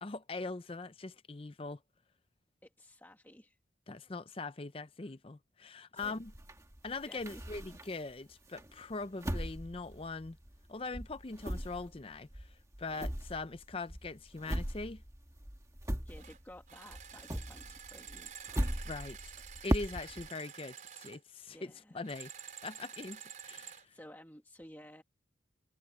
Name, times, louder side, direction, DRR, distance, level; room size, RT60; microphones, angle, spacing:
voice 1, 0.0-1.8 3.9-6.3 6.8-10.4 10.7-15.0 18.8-19.3 19.6-22.3 22.6-23.8, left 3 dB, 30° left, 0.6 m, -42 dB
voice 2, 2.6-3.6 5.0-5.1 5.8-6.2 7.0-7.4 16.0-18.5 21.5-22.0 23.8-25.0, left 1 dB, 10° left, 1.7 m, -54 dB
sound 1, 6.0-8.1 8.6-10.7 10.9-16.6 16.9-20.3, equal, 15° right, 1.3 m, -38 dB
sound 2, 16.2-16.4 16.7-21.2 22.0-23.9, right 8 dB, 40° right, 4.6 m, -49 dB
head